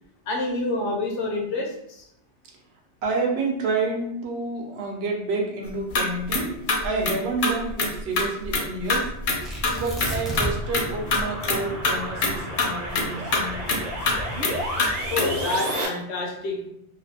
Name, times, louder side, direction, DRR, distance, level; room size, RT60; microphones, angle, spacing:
voice 1, 0.3-2.0 15.1-16.7, left 2 dB, 90° left, 0 dB, 0.9 m, -28 dB
voice 2, 3.0-9.1 9.7-13.9, right 3 dB, 70° right, 0 dB, 0.9 m, -29 dB
sound 1, 5.7-6.0 6.3-6.4 6.7-7.9 8.2-8.6 8.9-9.4 9.6-11.6 11.8-11.9 12.2-12.3 12.6-15.4, left 3 dB, 60° left, 0.6 m, -24 dB
sound 2, 9.3-15.9, equal, 50° right, 0.5 m, -33 dB
Tearing, 9.4-10.8 11.1-11.2 11.7-14.1 14.8-15.2, right 1 dB, ahead, 0.4 m, -33 dB
2.6 x 2.1 x 2.6 m, 0.74 s
omnidirectional pair, 1.1 m